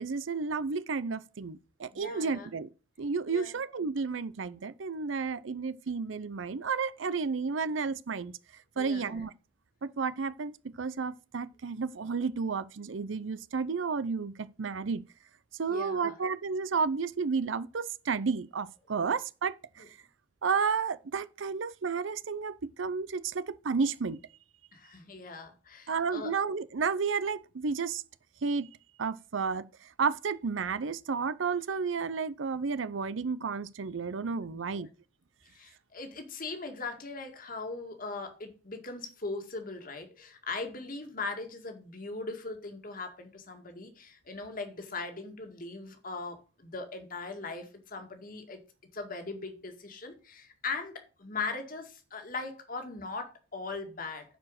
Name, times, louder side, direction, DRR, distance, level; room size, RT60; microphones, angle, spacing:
voice 1, 0.0-2.7 3.0-8.3 8.8-9.3 9.8-15.0 15.6-19.5 20.4-24.2 25.9-28.0 28.4-28.7 29.0-29.6 30.0-34.9, right 5 dB, 85° right, 0.6 m, -32 dB
voice 2, 1.9-2.5 3.3-3.6 8.8-9.2 15.7-16.2 19.0-19.1 19.8-19.9 24.7-26.3 34.5-34.9 35.5-48.6 48.9-54.4, left 3 dB, 45° left, 2.0 m, -40 dB
10.0 x 4.9 x 6.4 m
head